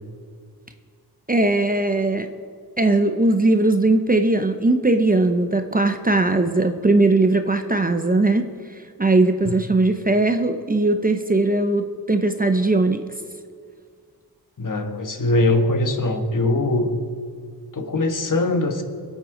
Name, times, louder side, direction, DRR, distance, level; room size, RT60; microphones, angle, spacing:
voice 1, 1.3-2.3 2.8-8.5 9.0-13.0, right 2 dB, 20° right, 7 dB, 0.7 m, -19 dB
voice 2, 14.6-17.0 17.7-18.8, left 2 dB, 50° left, 6 dB, 1.3 m, -21 dB
24.0 x 8.2 x 3.8 m, 2.1 s
wide cardioid pair, 80°, 39 cm